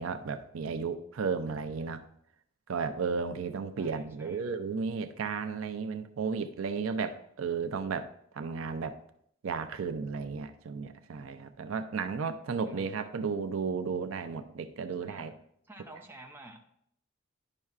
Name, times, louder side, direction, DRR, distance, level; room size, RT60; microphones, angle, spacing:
voice 1, 0.0-2.0 2.7-8.1 8.3-9.0 9.4-15.3, right 5 dB, 80° right, 9 dB, 0.5 m, -34 dB
voice 2, 3.8-4.4 12.6-13.0 15.0-15.3 15.7-16.6, right 1 dB, 10° right, 2 dB, 0.6 m, -50 dB
10.5 x 5.5 x 2.4 m, 0.70 s
head